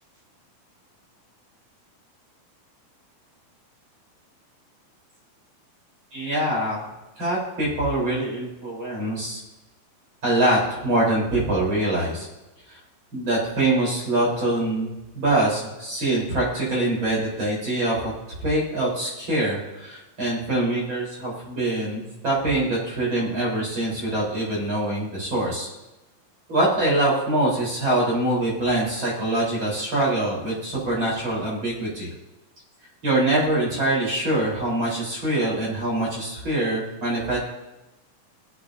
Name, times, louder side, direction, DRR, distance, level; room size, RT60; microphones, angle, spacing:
voice 1, 6.1-6.8 7.2-9.4 10.2-12.3 12.7-12.8 13.1-18.1 18.4-25.7 26.5-32.1 33.0-37.4, right 1 dB, 35° right, -5 dB, 4.6 m, -24 dB
20.0 x 8.5 x 2.7 m, 1.0 s
omnidirectional pair, 4.1 m